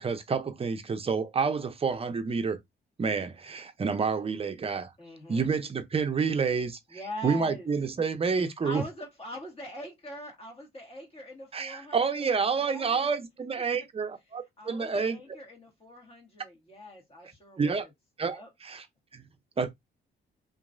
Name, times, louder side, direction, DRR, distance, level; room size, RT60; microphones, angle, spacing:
voice 1, 0.0-2.6 3.0-4.9 5.3-8.8 11.5-15.2 17.6-17.9 18.2-18.8 19.1-19.2 19.6-19.7, right 5 dB, 30° right, 0.6 m, -29 dB
voice 2, 5.0-5.5 6.9-7.7 8.6-13.1 14.6-17.9 18.2-18.5, equal, 30° left, 1.6 m, -43 dB
2.9 x 2.5 x 2.6 m
cardioid pair, 90°, 20 cm